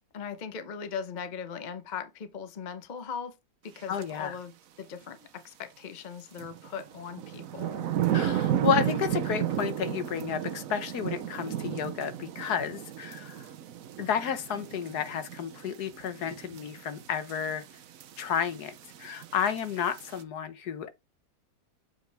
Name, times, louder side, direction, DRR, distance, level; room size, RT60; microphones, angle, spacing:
voice 1, 0.1-3.3 3.6-7.9, left 6 dB, 40° left, 0.6 m, -39 dB
voice 2, 3.9-4.3 8.1-13.5 14.0-17.6 18.2-20.9, left 8 dB, 70° left, 1.5 m, -31 dB
sound 1, 4.0-4.1 6.4-20.2, right 11 dB, 60° right, 1.0 m, -34 dB
7.7 x 5.1 x 3.4 m
omnidirectional pair, 1.8 m